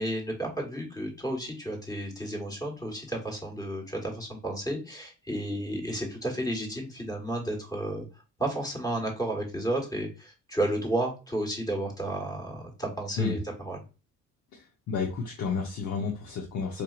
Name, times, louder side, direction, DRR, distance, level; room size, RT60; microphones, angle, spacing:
voice 1, 0.0-8.0 8.4-13.4 13.6-13.8, right 1 dB, 10° left, -1 dB, 1.4 m, -32 dB
voice 2, 14.5-16.8, left 5 dB, 70° left, 0 dB, 0.8 m, -31 dB
4.4 x 2.7 x 2.4 m, 0.32 s
cardioid pair, 90°, 30 cm